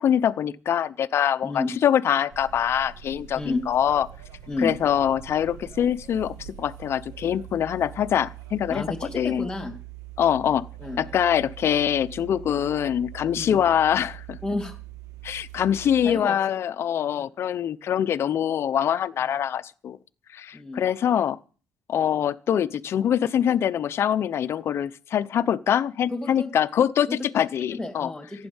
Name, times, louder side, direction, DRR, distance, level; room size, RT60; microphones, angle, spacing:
voice 1, 0.0-4.1 4.6-8.8 9.1-9.5 10.2-10.6 11.0-14.4 15.2-20.0 20.3-21.4 21.9-27.1 27.3-28.1, left 9 dB, 50° left, 0.8 m, -24 dB
sound 1, 2.3-16.1, right 13 dB, 90° right, 2.1 m, -43 dB
voice 2, 8.7-9.7 10.8-11.0 13.3-13.6 14.4-14.8 16.0-16.4 20.5-20.8 26.1-26.5 27.1-27.2 27.8-28.5, left 2 dB, 10° left, 3.0 m, -31 dB
15.0 x 10.5 x 7.2 m
cardioid pair, 135°, 5 cm